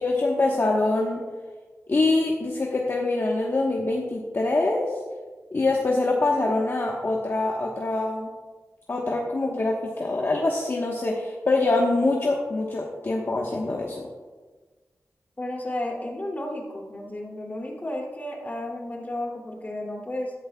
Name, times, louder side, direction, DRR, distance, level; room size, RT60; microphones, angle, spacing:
voice 1, 0.0-1.2 1.9-4.9 5.5-8.3 8.9-14.0, left 2 dB, 45° left, -2 dB, 1.2 m, -24 dB
voice 2, 15.4-20.3, left 1 dB, 30° left, -1 dB, 2.7 m, -33 dB
14.5 x 12.0 x 2.3 m, 1.4 s
wide cardioid pair, 100°, 5 cm